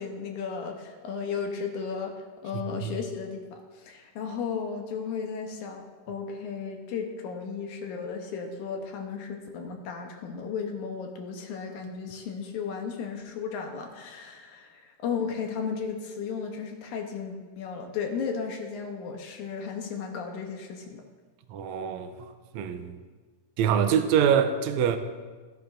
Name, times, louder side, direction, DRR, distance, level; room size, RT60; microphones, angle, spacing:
voice 1, 0.0-2.2 2.4-21.0, left 6 dB, 70° left, 2.2 m, -34 dB
voice 2, 21.5-22.1 22.5-22.9 23.6-25.0, right 8 dB, 80° right, 1.7 m, -24 dB
13.5 x 10.5 x 2.6 m
omnidirectional pair, 4.0 m